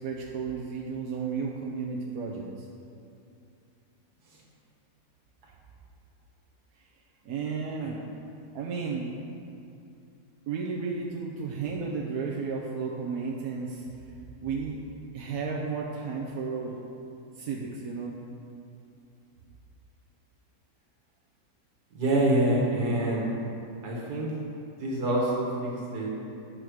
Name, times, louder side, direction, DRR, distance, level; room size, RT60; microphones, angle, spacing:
voice 1, 0.0-2.7 7.2-8.0 8.5-9.1 10.5-13.8 14.4-14.8 15.1-16.8 17.4-18.2, right 5 dB, 70° right, -2 dB, 1.2 m, -33 dB
voice 2, 21.9-23.3 23.8-24.3 24.7-26.1, right 1 dB, 85° right, -3 dB, 2.1 m, -26 dB
9.5 x 5.0 x 6.2 m, 2.6 s
omnidirectional pair, 1.6 m